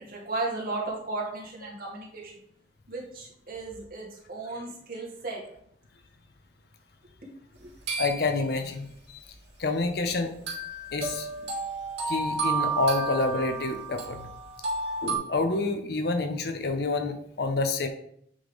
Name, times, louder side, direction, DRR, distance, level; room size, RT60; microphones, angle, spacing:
voice 1, 0.0-2.3 2.9-5.4 7.2-7.3 7.6-7.7, right 3 dB, 50° right, -4 dB, 2.1 m, -35 dB
sound 1, 7.9-8.5 10.5-15.2, right 4 dB, 75° right, 2.4 m, -32 dB
voice 2, 8.0-9.2 9.6-10.4 10.9-11.3 12.1-14.3 15.0-17.9, left 3 dB, 60° left, 6 dB, 0.6 m, -28 dB
8.4 x 3.8 x 3.5 m, 0.69 s
head